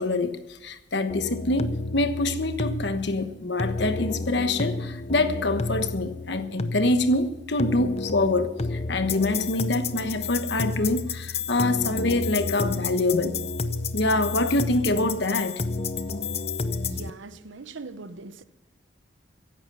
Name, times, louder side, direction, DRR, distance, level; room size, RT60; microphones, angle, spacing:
voice 1, 0.0-13.4 13.9-15.6, left 2 dB, 60° left, 1.2 m, -25 dB
sound 1, 1.1-17.1, left 3 dB, 30° left, 0.6 m, -31 dB
voice 2, 16.8-18.4, right 3 dB, 75° right, 0.8 m, -41 dB
15.0 x 11.0 x 5.5 m
head